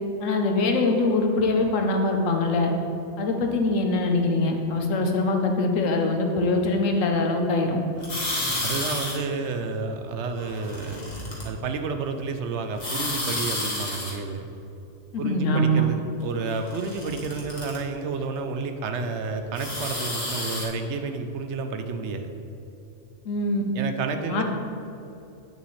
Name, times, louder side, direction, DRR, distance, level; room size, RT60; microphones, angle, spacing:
voice 1, 0.2-2.7 3.2-7.8 15.1-15.9 23.2-23.6 24.3-24.4, left 2 dB, 90° left, 3 dB, 1.2 m, -23 dB
sound 1, 8.0-9.1 10.4-11.4 12.8-14.1 16.4-17.8 19.6-20.7, left 1 dB, 35° left, 1.4 m, -30 dB
voice 2, 8.6-11.1 11.4-14.4 15.2-22.3 23.7-24.4, right 4 dB, 70° right, 7 dB, 0.9 m, -30 dB
8.3 x 6.6 x 3.2 m, 2.9 s
omnidirectional pair, 1.3 m